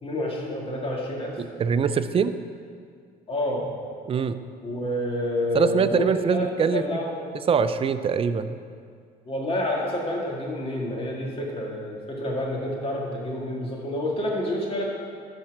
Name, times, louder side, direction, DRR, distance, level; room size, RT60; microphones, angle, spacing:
voice 1, 0.0-1.4 3.3-3.7 4.6-7.4 9.3-14.8, left 1 dB, 35° left, -2 dB, 2.0 m, -29 dB
voice 2, 1.4-2.3 4.1-4.4 5.5-6.8 7.5-8.6, right 6 dB, 35° right, 11 dB, 0.4 m, -23 dB
12.5 x 4.4 x 5.9 m, 2.2 s
cardioid pair, 110°, 17 cm